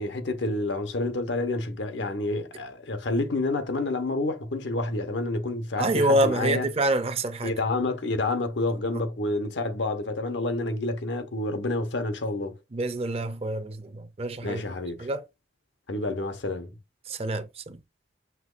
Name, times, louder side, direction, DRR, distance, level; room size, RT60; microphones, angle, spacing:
voice 1, 0.0-6.7 7.4-12.5 14.4-15.1 15.9-16.7, left 2 dB, 85° left, 0.9 m, -29 dB
voice 2, 5.8-7.5 12.7-14.6 15.0-15.2 17.1-17.8, right 1 dB, 35° right, 0.5 m, -26 dB
5.8 x 2.9 x 2.5 m
head